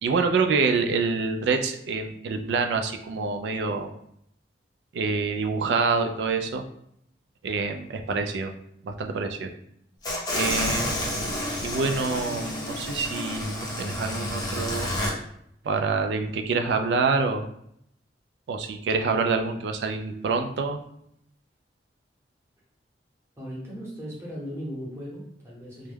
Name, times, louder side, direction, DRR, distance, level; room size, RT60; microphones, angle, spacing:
voice 1, 0.0-3.9 4.9-6.6 7.4-8.5 8.8-9.5 10.3-14.9 15.6-17.5 18.5-20.8, right 4 dB, 75° right, 5 dB, 0.3 m, -26 dB
sound 1, 10.0-15.1, left 1 dB, 20° left, 0.5 m, -30 dB
voice 2, 23.4-25.9, equal, 15° right, -6 dB, 0.8 m, -37 dB
2.2 x 2.1 x 3.2 m, 0.71 s
head